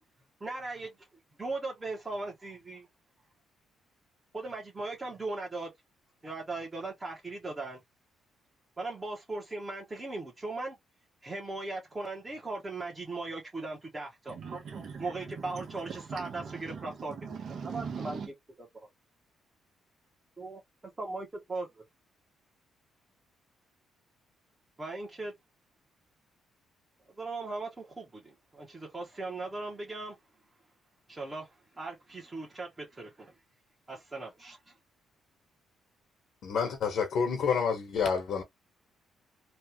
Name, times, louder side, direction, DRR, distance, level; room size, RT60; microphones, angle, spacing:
voice 1, 0.4-1.1 1.4-2.9 4.3-5.7 6.2-7.8 8.8-10.8 11.2-14.4 15.0-17.2 17.7-18.2 18.8-18.9 20.4-20.6 21.0-21.8 24.8-25.3 27.2-30.2 31.1-33.3 33.9-34.7, right 3 dB, 25° right, 1.1 m, -38 dB
voice 2, 14.3-18.3, right 6 dB, 60° right, 1.1 m, -41 dB
voice 3, 36.4-38.4, left 6 dB, 70° left, 1.1 m, -28 dB
3.2 x 2.4 x 3.0 m
cardioid pair, 90°, 0 cm